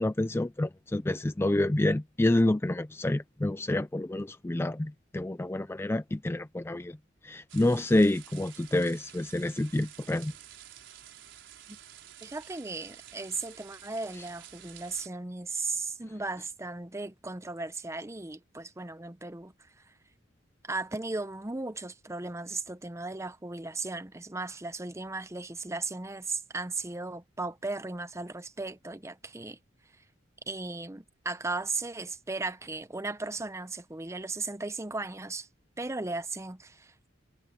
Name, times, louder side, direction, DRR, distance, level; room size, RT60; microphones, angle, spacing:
voice 1, 0.0-7.0 7.2-10.3, left 1 dB, 10° left, 0.4 m, -28 dB
sound 1, 7.5-15.1, right 11 dB, 70° right, 4.5 m, -51 dB
voice 2, 12.2-19.5 20.6-29.6 30.5-35.5 35.8-37.1, right 3 dB, 15° right, 0.7 m, -36 dB
head